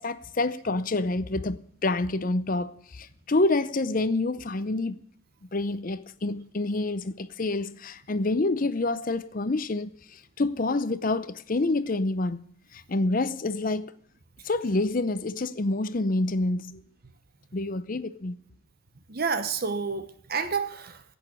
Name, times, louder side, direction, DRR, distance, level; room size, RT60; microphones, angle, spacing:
voice 1, 0.0-5.0 5.5-12.4 12.7-13.9 14.4-16.8 17.5-18.4, left 2 dB, 40° left, 0.6 m, -27 dB
voice 2, 19.1-21.0, right 5 dB, 45° right, 1.0 m, -29 dB
11.0 x 9.0 x 9.7 m
head